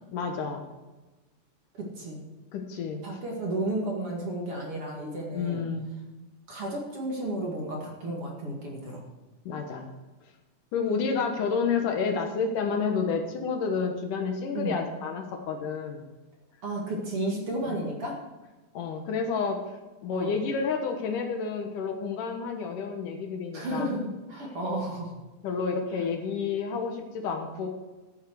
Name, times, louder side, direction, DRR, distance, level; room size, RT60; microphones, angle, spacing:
voice 1, 0.1-0.6 2.5-3.0 5.3-5.9 9.5-9.9 10.7-16.0 17.7-17.8 18.7-19.6 20.0-23.9 25.4-27.7, left 5 dB, 70° left, 4 dB, 2.5 m, -30 dB
voice 2, 1.7-2.2 3.0-5.6 6.5-9.0 14.5-14.8 16.6-18.2 20.1-20.3 23.5-25.1, right 1 dB, 45° right, -1 dB, 2.6 m, -32 dB
14.0 x 7.4 x 6.4 m, 1.2 s
omnidirectional pair, 4.2 m